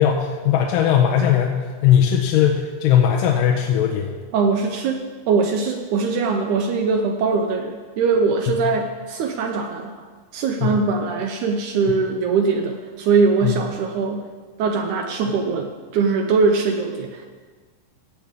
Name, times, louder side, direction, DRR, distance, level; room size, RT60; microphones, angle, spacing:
voice 1, 0.0-4.2 8.6-8.7 10.6-10.8 13.4-13.6, left 9 dB, 80° left, 0 dB, 2.3 m, -18 dB
voice 2, 4.3-5.0 5.3-9.9 10.3-14.3 14.6-17.3, right 4 dB, 75° right, 4 dB, 1.9 m, -21 dB
16.0 x 8.2 x 3.6 m, 1.4 s
omnidirectional pair, 4.0 m